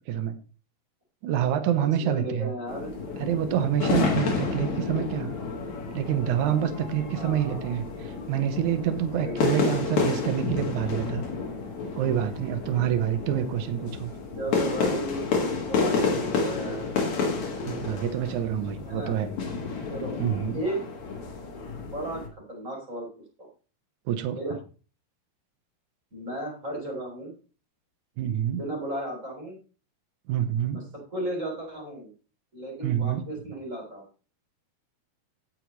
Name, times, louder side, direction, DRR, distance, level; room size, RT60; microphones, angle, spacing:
voice 1, 1.2-2.5 3.2-5.3 5.9-11.2 11.9-14.1 17.6-19.3 20.2-20.6 24.1-24.4 28.2-28.6 30.3-30.9 32.8-33.2, right 10 dB, 85° right, 8 dB, 1.7 m, -27 dB
voice 2, 1.8-2.9 7.1-7.8 9.1-10.1 12.3-12.8 14.3-16.9 18.8-19.1 19.9-20.2 20.5-20.8 21.9-23.1 23.4-23.5 24.3-24.5 26.1-27.3 28.5-29.6 30.7-30.8 31.1-32.1 32.5-34.0, right 1 dB, 20° right, -1 dB, 3.4 m, -35 dB
sound 1, 2.7-22.3, left 4 dB, 50° left, 2.7 m, -30 dB
17.5 x 6.6 x 3.1 m, 0.36 s
omnidirectional pair, 5.0 m